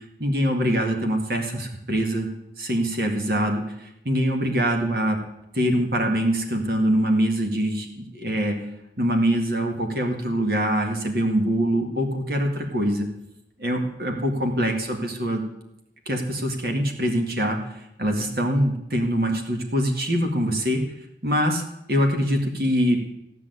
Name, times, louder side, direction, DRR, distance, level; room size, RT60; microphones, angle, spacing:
voice 1, 0.2-2.3 2.6-3.6 4.0-5.2 5.5-8.6 9.0-13.1 13.6-15.4 16.1-17.6 18.0-20.8 21.2-21.6 21.9-23.0, equal, 55° right, 2 dB, 2.0 m, -23 dB
15.0 x 6.2 x 9.4 m, 0.83 s
head